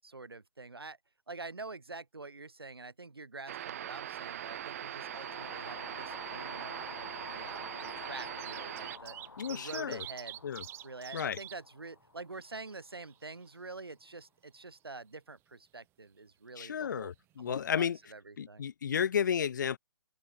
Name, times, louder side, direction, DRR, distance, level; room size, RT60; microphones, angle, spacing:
voice 1, 0.0-1.0 1.3-9.2 9.5-10.4 10.8-17.1 17.4-18.7, right 3 dB, 75° right, 6.6 m, -46 dB
sound 1, 3.5-9.0, right 11 dB, 40° right, 0.8 m, -41 dB
sound 2, 4.1-4.8 5.1-5.2 6.3-6.4 7.3-11.6 12.0-12.1 12.4-13.4 17.3-17.4 17.6-17.7, right 16 dB, 20° right, 6.5 m, -47 dB
sound 3, 4.6-12.8, left 3 dB, 75° left, 5.1 m, -49 dB
voice 2, 9.4-10.0 10.4-10.6 11.1-11.4 16.6-18.0 18.4-19.8, left 8 dB, 50° left, 1.1 m, -32 dB
open air
figure-of-eight pair, 135°, 13 cm